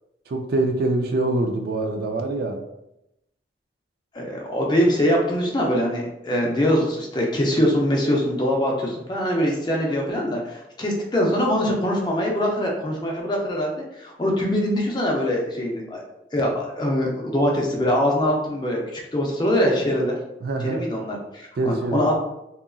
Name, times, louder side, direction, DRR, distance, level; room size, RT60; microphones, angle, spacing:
voice 1, 0.3-2.6 20.4-20.8 21.6-22.0, right 2 dB, 55° right, 4 dB, 0.3 m, -24 dB
voice 2, 4.1-16.0 16.3-20.2 20.6-22.2, equal, 25° left, -1 dB, 0.4 m, -23 dB
2.8 x 2.4 x 2.3 m, 0.87 s
head